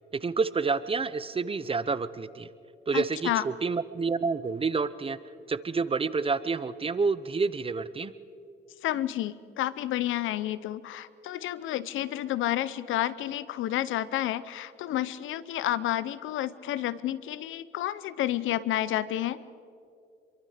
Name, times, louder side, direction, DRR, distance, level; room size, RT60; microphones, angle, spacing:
voice 1, 0.2-2.5 2.9-5.2 5.5-8.1, right 4 dB, 30° right, 15 dB, 0.8 m, -28 dB
voice 2, 2.9-3.4 8.8-19.4, left 13 dB, 85° left, 17 dB, 0.8 m, -30 dB
27.0 x 23.5 x 5.1 m, 2.5 s
cardioid pair, 90°, 20 cm